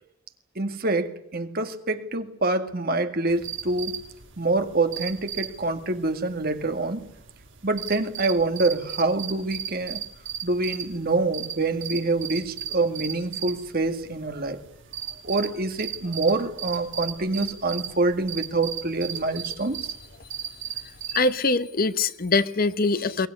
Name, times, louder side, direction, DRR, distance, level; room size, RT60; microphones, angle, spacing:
voice 1, 0.6-4.0 4.4-7.1 7.6-10.0 10.4-14.6 15.2-19.9, right 2 dB, 50° right, 7 dB, 2.0 m, -26 dB
sound 1, 3.3-21.3, right 8 dB, 65° right, 3.1 m, -37 dB
voice 2, 21.1-23.3, left 3 dB, 45° left, 13 dB, 1.0 m, -23 dB
22.5 x 19.0 x 9.7 m, 0.75 s
head